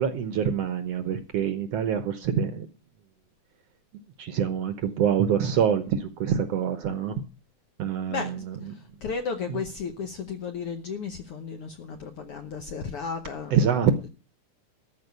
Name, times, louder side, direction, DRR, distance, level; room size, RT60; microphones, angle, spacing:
voice 1, 0.0-2.7 4.2-7.2 7.8-8.7 9.5-9.6 13.5-14.1, right 8 dB, 65° right, 9 dB, 1.7 m, -26 dB
voice 2, 8.1-8.4 9.0-13.6, left 5 dB, 65° left, 6 dB, 1.4 m, -34 dB
13.5 x 5.2 x 9.2 m, 0.33 s
omnidirectional pair, 3.7 m